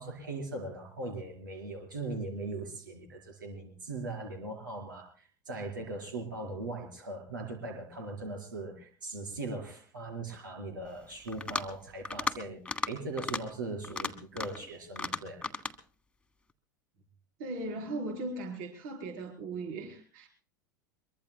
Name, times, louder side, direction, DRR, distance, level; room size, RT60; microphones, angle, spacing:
voice 1, 0.0-15.4, right 2 dB, 80° right, 2 dB, 4.6 m, -39 dB
sound 1, 11.3-11.7 12.0-12.4 12.6-12.9 13.2-13.4 13.8-14.6 15.0-15.7, left 3 dB, 10° left, 1.4 m, -34 dB
voice 2, 17.4-20.3, right 2 dB, 55° right, 3 dB, 4.5 m, -38 dB
23.5 x 23.0 x 2.2 m, 0.40 s
figure-of-eight pair, 80°, 11 cm